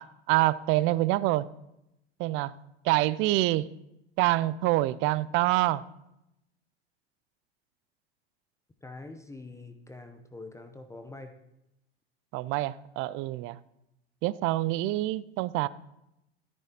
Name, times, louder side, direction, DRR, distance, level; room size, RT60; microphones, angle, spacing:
voice 1, 0.0-1.5 2.2-2.5 2.8-3.7 4.2-5.8 12.3-13.6 14.2-15.7, right 17 dB, 40° right, 0.4 m, -26 dB
voice 2, 8.8-11.3, left 2 dB, 10° left, 0.7 m, -45 dB
13.5 x 9.6 x 2.9 m
hypercardioid pair, 90°, 33 cm